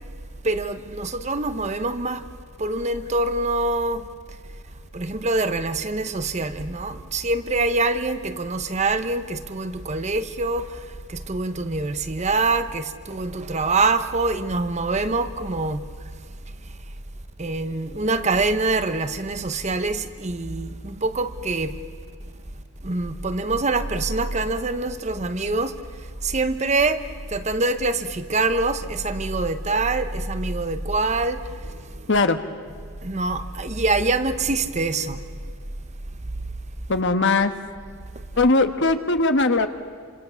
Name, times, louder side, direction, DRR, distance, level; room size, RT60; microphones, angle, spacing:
voice 1, 0.4-2.2 2.6-4.1 4.9-10.8 11.1-15.8 17.4-21.7 22.8-25.8 26.2-27.0 27.3-32.0 33.0-35.2, right 3 dB, 30° right, 1.0 m, -25 dB
voice 2, 32.1-32.4 36.9-37.5 38.4-39.7, left 3 dB, 55° left, 1.4 m, -19 dB
28.5 x 25.5 x 7.0 m
head